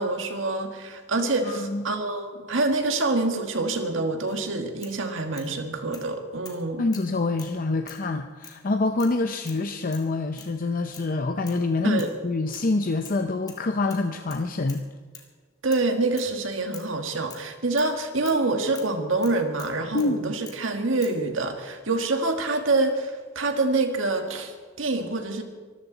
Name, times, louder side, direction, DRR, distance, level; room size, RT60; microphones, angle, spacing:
voice 1, 0.0-6.9 11.8-12.1 15.6-25.4, right 3 dB, 80° right, 5 dB, 1.8 m, -26 dB
voice 2, 1.2-1.8 6.8-14.8 19.9-20.3, left 3 dB, 45° left, 6 dB, 0.7 m, -26 dB
sound 1, 4.3-4.4 4.8-5.5 5.9-6.1 6.4-6.6 6.9-7.6 7.9-8.1 8.4-8.6 9.0-9.2 9.5-9.6 9.9-10.1 10.4-10.6 10.9-11.1 11.5-11.6 12.0-12.2 12.5-13.2 13.5-13.6 13.9-14.9 15.1-15.3 15.7-15.9 16.2-16.3 16.7-16.9 17.3-17.5 17.8-18.0 18.2-18.4 18.7-18.9 19.2-20.1 20.5-20.6 21.0-21.2, left 5 dB, 20° left, 2.1 m, -46 dB
24.5 x 14.0 x 4.0 m, 1.5 s
head